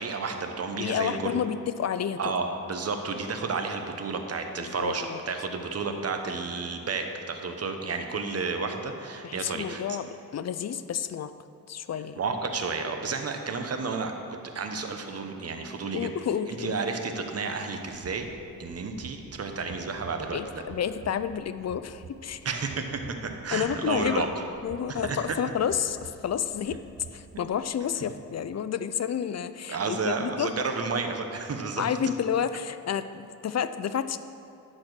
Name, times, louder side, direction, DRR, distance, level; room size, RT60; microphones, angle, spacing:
voice 1, 0.0-1.4 2.2-10.0 12.2-14.1 14.4-16.1 16.5-18.3 18.6-20.6 22.4-24.4 24.9-25.4 29.7-31.9, right 4 dB, 45° right, 5 dB, 0.9 m, -31 dB
voice 2, 0.7-2.2 4.6-5.2 9.2-10.0 10.3-11.3 11.7-12.2 15.9-16.8 20.3-22.4 23.5-24.3 24.6-26.8 27.1-30.5 31.8-34.2, left 8 dB, 50° left, 12 dB, 0.4 m, -30 dB
sound 1, 17.8-27.7, right 5 dB, 70° right, 0.8 m, -48 dB
10.5 x 4.3 x 6.7 m, 2.7 s
cardioid pair, 85°, 36 cm